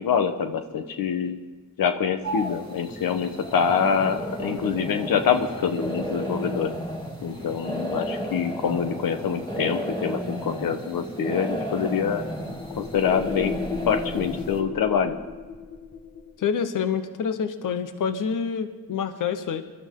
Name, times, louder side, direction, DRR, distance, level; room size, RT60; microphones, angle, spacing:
voice 1, 0.0-1.4 1.8-6.7 7.2-12.2 12.8-13.5 13.9-15.2, left 7 dB, 85° left, 8 dB, 1.1 m, -25 dB
sound 1, 2.2-14.6, equal, 15° left, 2.5 m, -33 dB
sound 2, 12.0-16.4, left 6 dB, 45° left, 1.4 m, -36 dB
voice 2, 16.4-19.6, left 6 dB, 65° left, 10 dB, 1.0 m, -27 dB
22.5 x 13.0 x 3.8 m, 1.4 s
cardioid pair, 100°, 34 cm